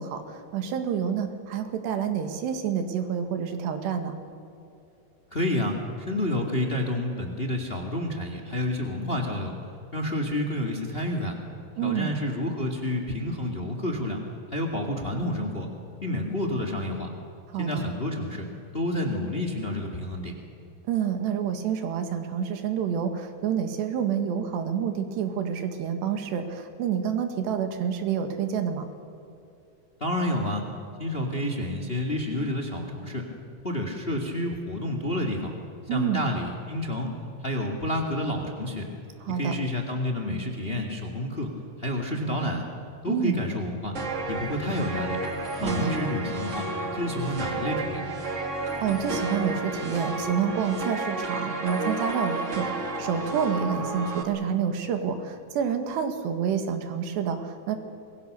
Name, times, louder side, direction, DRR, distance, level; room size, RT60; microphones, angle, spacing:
voice 1, 0.0-4.1 11.8-12.1 17.5-17.8 20.9-28.9 35.9-36.2 39.3-39.5 43.1-43.4 45.6-45.9 48.8-57.8, right 7 dB, 75° right, 7 dB, 3.9 m, -28 dB
voice 2, 5.3-5.8 6.1-9.5 9.9-11.4 11.8-14.2 14.5-15.7 16.0-17.1 17.6-18.4 18.7-20.3 30.0-30.6 31.0-33.3 33.6-35.5 35.9-37.1 37.4-38.9 39.3-41.5 41.8-42.6 43.0-43.9 44.3-45.2 45.6-46.7 46.9-48.1, left 1 dB, 25° left, 4 dB, 1.2 m, -29 dB
sound 1, 43.9-54.2, right 2 dB, 45° right, 0.9 m, -31 dB
27.0 x 22.0 x 6.8 m, 2.7 s
omnidirectional pair, 5.1 m